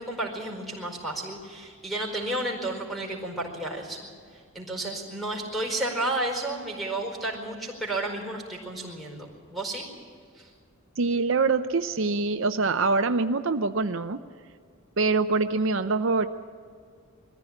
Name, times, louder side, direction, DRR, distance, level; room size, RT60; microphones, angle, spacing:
voice 1, 0.0-4.1 4.5-9.9 10.4-10.5, right 1 dB, ahead, 0 dB, 4.7 m, -32 dB
voice 2, 11.0-14.2 15.0-16.3, right 3 dB, 60° right, 9 dB, 0.6 m, -24 dB
22.0 x 15.0 x 8.8 m, 2.2 s
head